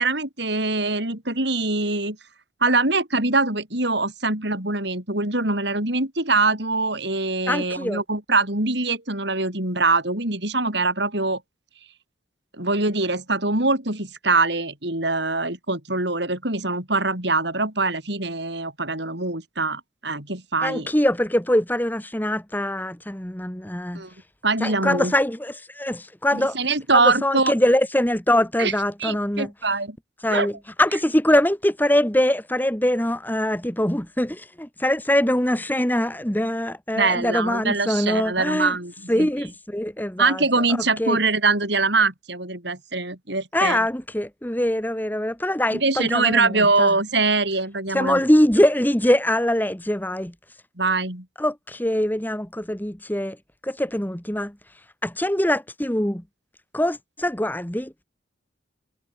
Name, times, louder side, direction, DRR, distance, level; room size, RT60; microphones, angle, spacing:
voice 1, 0.0-2.2 2.6-11.4 12.6-20.9 23.9-24.1 24.4-25.1 26.3-27.5 28.6-28.7 29.0-30.0 30.3-30.5 37.0-39.3 40.2-43.8 45.7-48.2 50.8-51.3, right 3 dB, 60° right, 6.0 m, -23 dB
voice 2, 7.5-8.0 20.6-24.0 24.6-26.6 26.9-29.5 30.2-38.8 39.1-40.4 41.0-41.2 43.5-46.9 47.9-50.3 51.4-53.4 53.6-54.6 55.0-56.2 56.7-58.0, left 1 dB, 10° left, 1.5 m, -23 dB
head